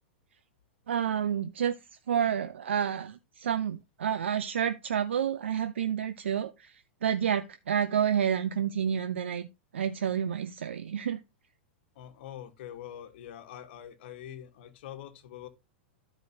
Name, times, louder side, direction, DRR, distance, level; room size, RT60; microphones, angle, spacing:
voice 1, 0.9-1.7 2.1-6.7 7.0-9.5 9.7-11.2, right 8 dB, 85° right, 0.6 m, -29 dB
voice 2, 11.9-15.5, left 11 dB, 65° left, 1.4 m, -44 dB
13.0 x 4.9 x 2.8 m
hypercardioid pair, 120°, 6 cm